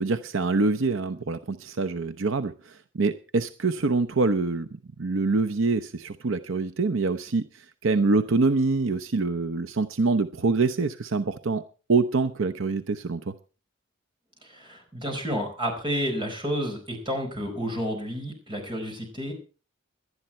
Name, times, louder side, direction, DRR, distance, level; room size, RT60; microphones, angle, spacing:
voice 1, 0.0-4.7 5.0-11.6 11.9-13.3, right 3 dB, 65° right, 10 dB, 0.7 m, -25 dB
voice 2, 14.4-19.3, equal, 25° right, 3 dB, 4.8 m, -30 dB
18.0 x 11.5 x 4.3 m, 0.36 s
head